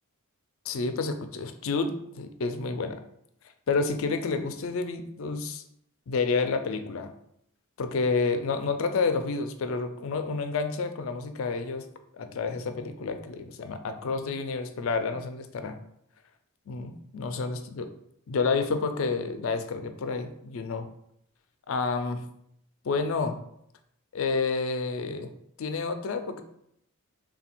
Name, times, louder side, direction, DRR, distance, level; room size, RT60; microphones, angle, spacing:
voice 1, 0.7-3.0 3.7-5.6 6.1-7.1 7.8-11.8 12.1-15.8 16.7-17.9 18.3-20.9 21.7-22.2 22.8-23.4 24.1-25.3 25.6-26.4, left 4 dB, 65° left, 8 dB, 0.4 m, -29 dB
3.3 x 2.2 x 4.4 m, 0.73 s
head